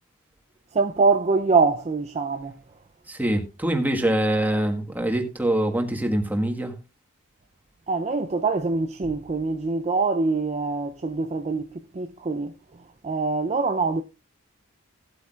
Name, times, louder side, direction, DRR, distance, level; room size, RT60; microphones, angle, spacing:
voice 1, 0.7-2.6 7.9-12.5 13.0-14.0, right 4 dB, 30° right, 0.5 m, -24 dB
voice 2, 3.1-6.7, right 1 dB, 10° right, 1.5 m, -24 dB
17.0 x 8.1 x 2.4 m
head